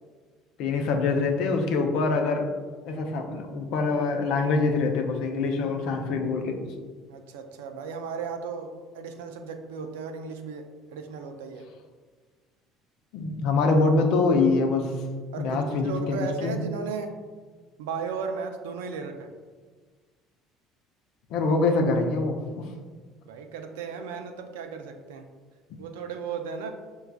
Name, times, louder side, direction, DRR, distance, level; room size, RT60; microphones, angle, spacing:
voice 1, 0.6-2.5 2.8-6.7 13.1-14.9 15.4-16.6 21.3-22.7, left 3 dB, 65° left, 3 dB, 0.5 m, -24 dB
voice 2, 7.1-11.7 15.3-17.1 17.8-19.3 23.2-25.3 25.8-26.7, right 5 dB, 80° right, 5 dB, 0.4 m, -35 dB
6.5 x 2.3 x 2.3 m, 1.5 s
hypercardioid pair, 65°, 0 cm